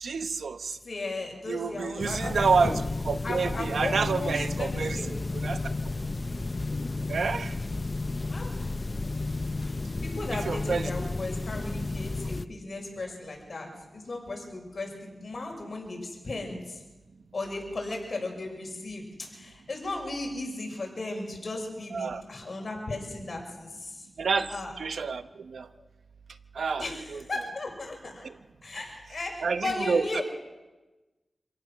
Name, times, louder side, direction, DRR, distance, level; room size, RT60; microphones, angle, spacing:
voice 1, 0.0-0.8 1.5-2.8 3.0-5.0 5.4-5.7 7.1-7.5 10.5-10.9 21.9-22.2 24.2-24.5 24.8-25.7 26.5-27.2 28.2-28.3 29.4-30.2, right 5 dB, 85° right, 10 dB, 1.0 m, -28 dB
voice 2, 0.8-2.8 3.2-5.1 8.3-8.5 9.1-9.2 9.6-9.7 10.0-16.8 17.3-19.0 19.3-24.1 24.5-24.7 26.7-28.3 28.6-30.2, left 2 dB, 55° left, 1 dB, 6.1 m, -36 dB
sound 1, 2.0-12.4, left 2 dB, 40° left, 0.8 m, -32 dB
26.5 x 17.0 x 6.4 m, 1.1 s
cardioid pair, 55°, 0 cm